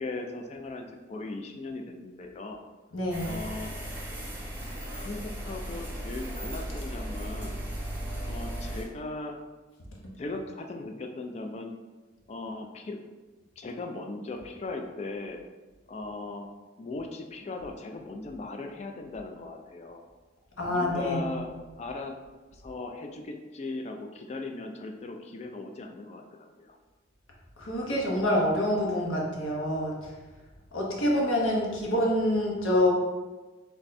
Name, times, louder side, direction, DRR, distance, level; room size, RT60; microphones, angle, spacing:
voice 1, 0.0-2.6 3.2-3.7 4.6-7.6 8.2-9.4 10.2-11.7 12.3-13.0 13.6-15.4 15.9-16.5 16.8-20.0 20.7-21.5 21.8-22.1 22.5-26.8, left 2 dB, 35° left, 4 dB, 0.3 m, -38 dB
voice 2, 2.9-3.4 20.6-21.4 27.6-30.1 30.7-32.9, left 1 dB, 90° left, -2 dB, 0.9 m, -26 dB
sound 1, 3.1-8.8, right 1 dB, 10° right, 0.7 m, -36 dB
3.5 x 2.2 x 4.0 m, 1.2 s
head